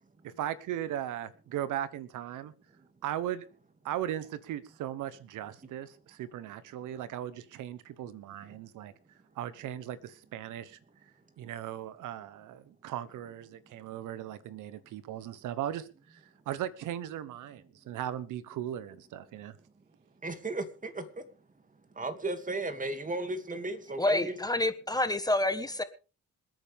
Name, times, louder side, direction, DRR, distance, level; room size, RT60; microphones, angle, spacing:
voice 1, 0.2-2.5 3.0-3.5 3.8-8.9 9.4-10.8 11.4-16.2 16.5-19.5, right 11 dB, 85° right, 1.1 m, -37 dB
voice 2, 20.2-21.0 22.0-24.4, right 2 dB, 25° right, 2.5 m, -35 dB
voice 3, 24.0-25.8, left 2 dB, 10° left, 1.5 m, -28 dB
26.5 x 9.2 x 3.6 m
cardioid pair, 90°, 30 cm